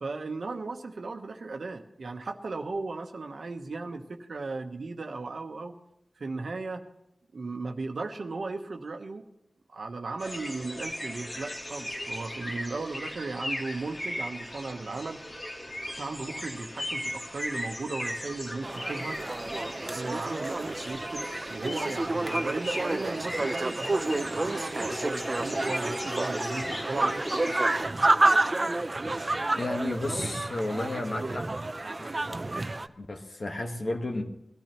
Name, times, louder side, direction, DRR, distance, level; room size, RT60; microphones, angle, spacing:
voice 1, 0.0-5.8 6.2-6.9 7.3-9.2 9.7-15.2 16.0-19.2 19.9-27.5, right 3 dB, 75° right, 5 dB, 1.1 m, -36 dB
sound 1, 10.2-27.8, left 1 dB, 30° left, 2.0 m, -37 dB
sound 2, 18.6-32.9, right 2 dB, 35° right, 0.5 m, -29 dB
voice 2, 29.6-31.4 33.0-34.2, left 2 dB, 55° left, 3 dB, 1.4 m, -32 dB
21.5 x 13.5 x 3.0 m, 0.82 s
wide cardioid pair, 85°, 0 cm